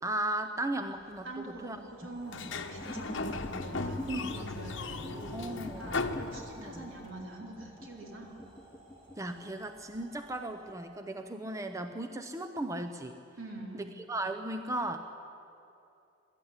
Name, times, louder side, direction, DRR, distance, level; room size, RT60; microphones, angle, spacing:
voice 1, 0.0-1.8 2.5-2.6 4.1-4.5 5.3-6.0 6.6-6.9 9.2-13.2 13.7-15.0, right 1 dB, 15° right, 7 dB, 0.7 m, -36 dB
sound 1, 0.9-10.7, right 1 dB, 30° right, 6.0 m, -55 dB
voice 2, 1.2-8.3 13.4-13.9, right 1 dB, 75° right, -1 dB, 4.0 m, -45 dB
Sliding door, 2.3-7.0, left 3 dB, 65° left, 1.1 m, -37 dB
sound 2, 2.7-4.4 4.9-9.2, left 1 dB, 10° left, 1.1 m, -44 dB
22.5 x 13.0 x 9.6 m, 2.8 s
head